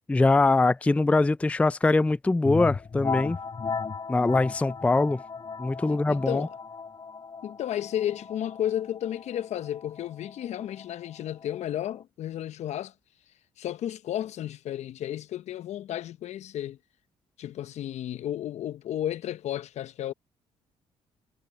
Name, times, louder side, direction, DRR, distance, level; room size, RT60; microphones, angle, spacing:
voice 1, 0.1-3.4 4.1-5.2 5.6-6.5, left 3 dB, 10° left, 0.4 m, -23 dB
sound 1, 2.4-12.0, left 5 dB, 35° left, 3.6 m, -36 dB
voice 2, 5.9-6.5 7.4-12.9 13.6-16.8 17.4-20.1, left 11 dB, 65° left, 0.9 m, -33 dB
supercardioid pair, 65°, 12 cm